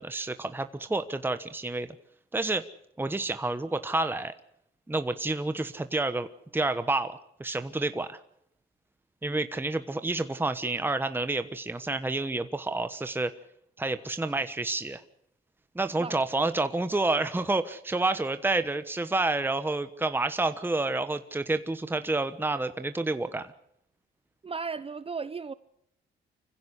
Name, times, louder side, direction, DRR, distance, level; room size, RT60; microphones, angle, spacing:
voice 1, 0.0-1.9 2.3-2.6 3.0-4.3 4.9-6.3 6.5-8.2 9.2-13.3 13.8-15.0 15.7-23.5, right 2 dB, 10° right, 1.2 m, -29 dB
voice 2, 24.4-25.5, right 5 dB, 30° right, 0.8 m, -35 dB
25.0 x 16.0 x 8.2 m
cardioid pair, 90°, 20 cm